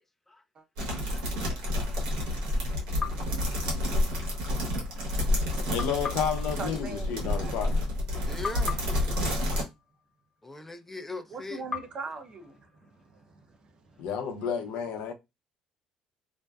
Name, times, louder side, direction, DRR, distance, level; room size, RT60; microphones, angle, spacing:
voice 1, 0.6-0.9 1.5-1.6 6.6-7.5 11.3-13.6 13.9-14.0, right 3 dB, 45° right, 0.6 m, -43 dB
sound 1, 0.8-9.6, left 1 dB, 90° right, 1.1 m, -29 dB
voice 2, 1.1-1.7 3.9-4.2 4.8-4.9 8.3-8.9 10.4-11.6, left 2 dB, 10° left, 0.5 m, -41 dB
sound 2, 3.0-4.4 5.8-8.1 8.4-10.7 11.7-13.6, left 5 dB, 35° left, 1.2 m, -41 dB
voice 3, 5.7-7.8 14.0-15.1, left 7 dB, 80° left, 0.6 m, -31 dB
2.6 x 2.1 x 2.2 m
supercardioid pair, 75°, 2 cm